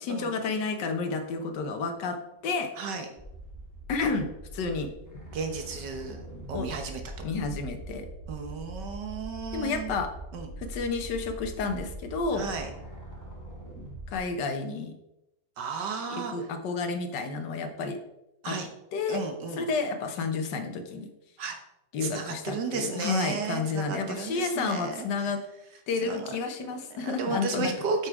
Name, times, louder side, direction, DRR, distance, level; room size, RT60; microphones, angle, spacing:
voice 1, 0.1-2.2 2.4-2.7 3.9-4.9 6.5-6.7 7.2-8.1 9.5-10.1 10.6-12.5 14.1-14.9 16.1-18.0 18.5-18.6 18.9-19.2 19.6-21.1 21.9-25.4 25.9-27.7, left 4 dB, 75° left, 6 dB, 1.7 m, -30 dB
voice 2, 2.8-3.1 5.3-6.2 6.5-7.0 8.3-9.9 10.3-10.5 12.3-12.7 15.6-16.5 18.4-18.7 19.1-19.7 21.4-21.6 22.0-25.1 26.0-26.3 27.0-28.1, right 4 dB, 75° right, 5 dB, 1.7 m, -33 dB
sound 1, 3.2-14.2, right 1 dB, 10° left, 1.3 m, -42 dB
8.6 x 5.6 x 4.8 m, 0.87 s
omnidirectional pair, 1.9 m